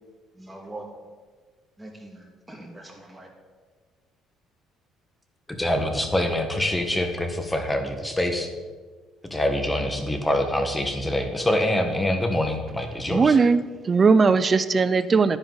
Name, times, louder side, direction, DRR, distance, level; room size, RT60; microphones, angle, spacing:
voice 1, 0.3-0.9 1.8-3.3, right 2 dB, 10° right, 1 dB, 2.1 m, -42 dB
voice 2, 5.5-8.5 9.3-13.3, left 1 dB, 10° left, 5 dB, 1.4 m, -25 dB
voice 3, 13.1-15.4, right 4 dB, 30° right, 13 dB, 0.5 m, -19 dB
10.0 x 9.7 x 4.0 m, 1.4 s
cardioid pair, 105°, 0 cm